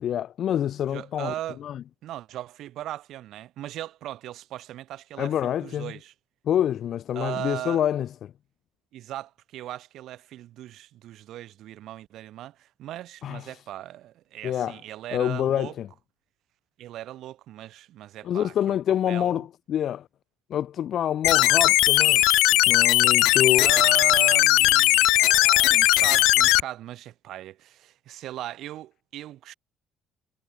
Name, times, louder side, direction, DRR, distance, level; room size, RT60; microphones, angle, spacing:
voice 1, 0.0-1.3 1.6-1.8 5.2-5.9 6.4-8.3 13.2-13.5 14.4-14.8 15.1-15.9 18.2-20.1 20.5-22.2 22.7-23.7, left 10 dB, 60° left, 1.8 m, -26 dB
voice 2, 0.9-1.6 2.0-6.1 7.1-7.8 8.9-15.7 16.8-18.8 19.1-19.4 23.6-29.5, right 13 dB, 70° right, 4.5 m, -38 dB
sound 1, 21.2-26.6, left 20 dB, 80° left, 0.6 m, -18 dB
supercardioid pair, 75°, 0 cm